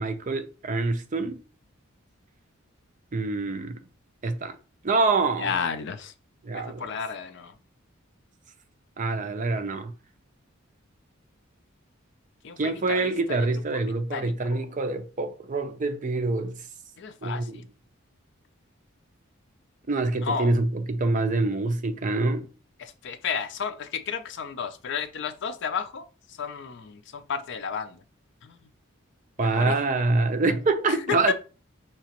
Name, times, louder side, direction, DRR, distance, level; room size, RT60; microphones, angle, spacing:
voice 1, 0.0-1.4 3.1-3.8 4.2-4.6 4.8-5.6 6.4-6.9 9.0-9.9 12.6-16.6 17.2-17.6 19.9-22.5 29.4-31.3, right 3 dB, 40° right, 0.5 m, -26 dB
voice 2, 5.4-6.1 6.5-7.5 12.4-13.5 13.7-13.8 14.1-14.6 17.0-17.6 20.2-20.5 22.8-26.0 26.4-28.0 28.4-28.6 29.4-29.8 31.1-31.3, left 6 dB, 60° left, 0.5 m, -32 dB
5.7 x 2.9 x 2.9 m
head